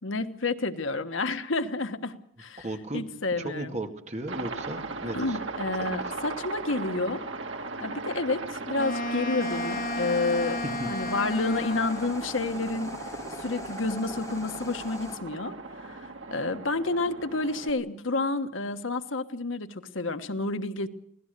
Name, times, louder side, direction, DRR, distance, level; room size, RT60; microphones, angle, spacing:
voice 1, 0.0-2.7 2.9-3.7 5.1-7.2 7.8-10.6 10.9-12.9 13.4-20.9, left 3 dB, 85° left, 9 dB, 1.4 m, -30 dB
voice 2, 2.6-3.0 3.4-5.4 5.8-5.9 10.8-10.9, right 2 dB, 35° right, 5 dB, 2.1 m, -35 dB
Aircraft, 4.3-17.7, right 3 dB, 85° right, 2.3 m, -38 dB
Wind instrument woodwind instrument, 8.8-12.3, left 1 dB, 45° left, 1.6 m, -33 dB
sound 1, 9.4-15.2, left 2 dB, 15° left, 5.6 m, -41 dB
25.5 x 17.5 x 6.8 m, 0.70 s
head